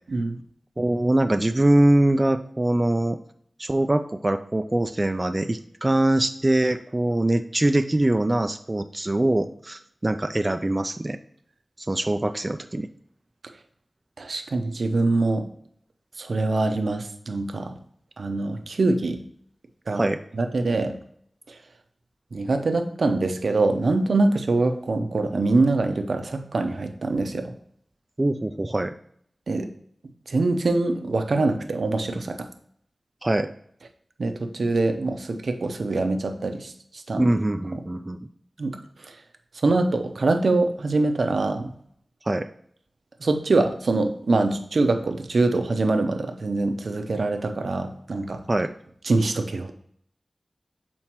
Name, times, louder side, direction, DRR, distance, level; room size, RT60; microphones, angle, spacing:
voice 1, 0.8-3.2 3.6-11.2 11.8-12.9 20.0-20.2 28.2-28.9 33.2-33.5 37.1-38.2 42.3-42.5 48.5-48.7, right 1 dB, 30° right, 7 dB, 0.3 m, -23 dB
voice 2, 14.2-15.4 16.2-17.7 18.2-19.2 19.9-20.0 20.4-20.9 22.3-27.5 29.5-29.7 30.3-32.5 34.2-36.7 37.1-37.2 38.6-38.8 39.6-41.7 43.2-48.4 49.1-49.7, right 2 dB, 80° right, 7 dB, 0.6 m, -24 dB
7.3 x 4.3 x 3.0 m, 0.67 s
wide cardioid pair, 55°, 0 cm